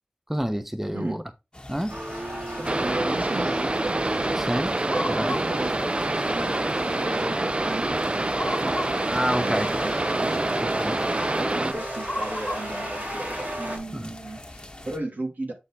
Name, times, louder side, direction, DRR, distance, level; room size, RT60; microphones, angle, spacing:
voice 1, 0.3-1.2 1.7-2.0 4.4-4.8 5.1-5.3 9.1-9.7 10.8-11.0 13.9-14.1, equal, 10° right, 0.9 m, -28 dB
sound 1, 1.5-15.0, left 1 dB, 30° left, 1.4 m, -39 dB
sound 2, 1.9-13.8, right 1 dB, 60° right, 3.0 m, -35 dB
sound 3, 2.6-11.7, right 2 dB, 40° right, 0.4 m, -26 dB
voice 2, 2.6-4.0 4.9-8.7 9.2-10.4 11.4-15.5, right 2 dB, 80° right, 1.9 m, -35 dB
8.3 x 4.1 x 4.0 m
wide cardioid pair, 45°, 3 cm